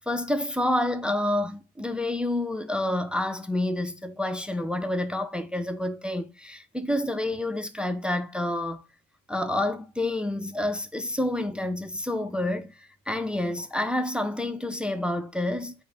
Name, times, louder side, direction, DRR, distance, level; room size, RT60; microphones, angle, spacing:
voice 1, 0.0-8.8 9.3-12.7 13.1-15.7, left 1 dB, 5° right, 0.3 m, -28 dB
3.7 x 2.6 x 3.2 m
cardioid pair, 90°, 30 cm